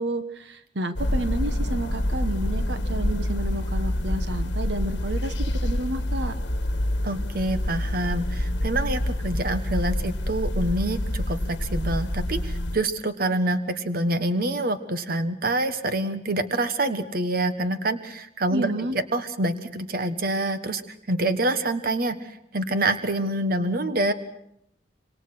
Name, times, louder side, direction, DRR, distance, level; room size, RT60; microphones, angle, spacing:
voice 1, 0.0-6.4 18.5-19.0, right 1 dB, 70° right, 9 dB, 1.4 m, -31 dB
sound 1, 1.0-12.8, left 1 dB, 75° left, 1.6 m, -27 dB
voice 2, 7.0-18.7 19.1-20.8 21.1-22.2 22.5-24.1, right 1 dB, 55° right, 10 dB, 1.4 m, -26 dB
26.5 x 25.0 x 6.2 m, 0.75 s
head